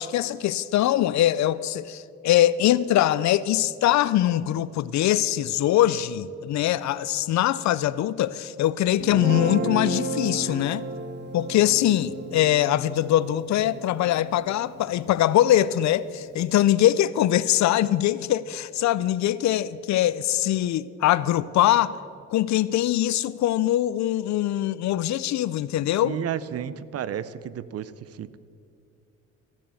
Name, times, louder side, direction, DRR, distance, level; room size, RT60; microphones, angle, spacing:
voice 1, 0.0-10.9 11.3-22.0 22.3-26.2, left 13 dB, 65° left, 0.5 m, -22 dB
Guitar, 9.0-15.3, right 2 dB, 35° right, 1.8 m, -33 dB
voice 2, 26.0-28.4, right 9 dB, 55° right, 0.6 m, -32 dB
14.5 x 6.9 x 7.8 m
cardioid pair, 90°, 30 cm